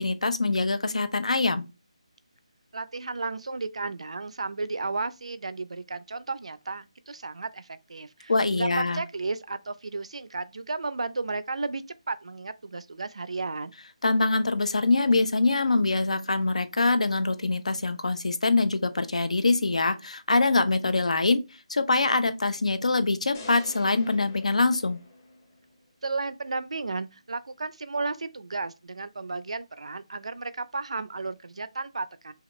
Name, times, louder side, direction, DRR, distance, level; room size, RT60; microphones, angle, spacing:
voice 1, 0.0-1.6 8.3-9.0 14.0-21.4 21.7-25.0, left 3 dB, 75° left, 0.8 m, -24 dB
voice 2, 2.7-11.8 12.1-13.7 26.0-32.3, right 3 dB, 65° right, 0.5 m, -33 dB
sound 1, 23.3-25.6, left 2 dB, 15° left, 0.8 m, -45 dB
5.7 x 2.4 x 3.0 m
figure-of-eight pair, 175°, 4 cm